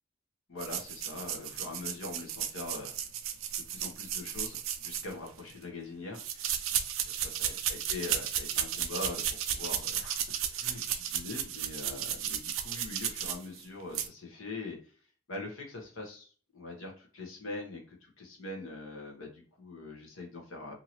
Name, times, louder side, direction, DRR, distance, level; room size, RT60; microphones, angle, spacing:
voice 1, 0.5-2.9 3.7-6.6 7.0-14.9 15.3-20.7, left 2 dB, 80° left, 1 dB, 1.0 m, -43 dB
sound 1, 0.6-5.5 6.1-13.6 13.9-14.1, right 9 dB, 75° right, 0.4 m, -34 dB
2.7 x 2.7 x 2.9 m, 0.41 s
head